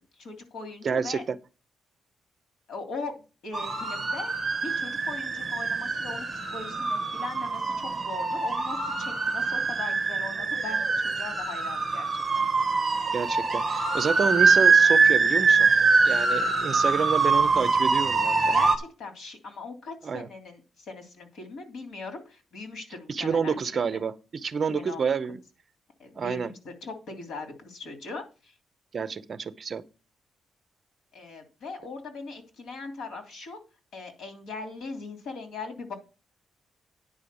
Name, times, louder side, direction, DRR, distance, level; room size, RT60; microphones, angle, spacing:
voice 1, 0.2-1.2 2.7-3.1 3.4-4.3 4.6-12.1 12.3-12.4 18.5-23.9 24.7-25.1 26.0-28.5 31.1-33.6 33.9-35.9, left 4 dB, 75° left, 3.0 m, -40 dB
voice 2, 0.8-1.4 13.1-15.7 16.0-18.5 20.0-20.3 23.1-25.4 26.2-26.5 28.9-29.8, right 6 dB, 35° right, 0.6 m, -29 dB
sound 1, 3.5-18.8, right 4 dB, 20° right, 1.5 m, -24 dB
9.9 x 5.1 x 6.9 m
wide cardioid pair, 160°, 0 cm